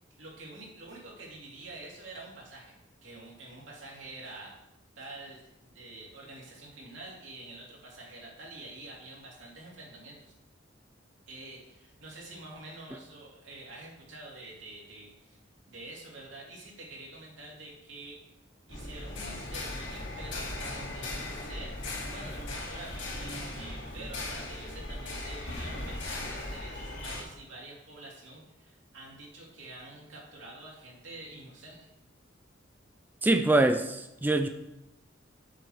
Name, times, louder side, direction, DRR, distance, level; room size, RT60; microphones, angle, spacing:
voice 1, 0.2-2.8 3.0-4.6 5.0-10.2 11.3-15.4 15.7-18.2 18.7-21.7 22.1-31.9, right 2 dB, 90° right, -4 dB, 2.8 m, -47 dB
sound 1, 18.7-27.2, left 2 dB, 75° left, 2.5 m, -38 dB
voice 2, 33.2-34.5, right 2 dB, 10° right, 7 dB, 0.3 m, -24 dB
7.6 x 4.8 x 6.3 m, 0.89 s
head